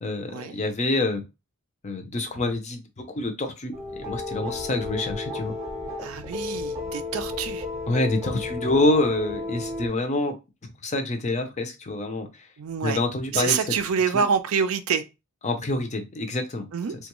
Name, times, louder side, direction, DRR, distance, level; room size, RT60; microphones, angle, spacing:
voice 1, 0.0-1.2 1.8-2.8 3.1-5.5 7.9-10.4 10.8-12.5 12.8-13.6 14.1-14.2 15.4-16.7 17.0-17.1, left 2 dB, 30° left, 0.5 m, -26 dB
sound 1, 3.7-9.9, left 3 dB, 30° right, 0.7 m, -33 dB
voice 2, 6.0-7.6 12.6-13.0 13.3-15.0 16.7-16.9, right 6 dB, 70° right, 0.4 m, -26 dB
3.3 x 2.3 x 3.0 m
head